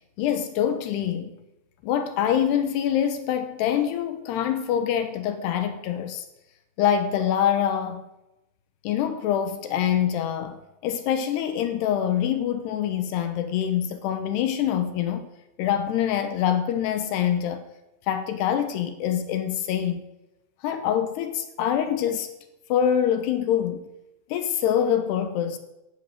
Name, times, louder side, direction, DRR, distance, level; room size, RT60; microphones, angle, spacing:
voice 1, 0.2-1.3 1.8-6.3 6.8-8.1 8.8-15.3 15.6-17.6 18.1-20.0 20.6-22.3 22.7-23.9 24.3-25.6, left 9 dB, 75° left, 2.8 m, -25 dB
14.0 x 10.5 x 9.4 m
omnidirectional pair, 5.2 m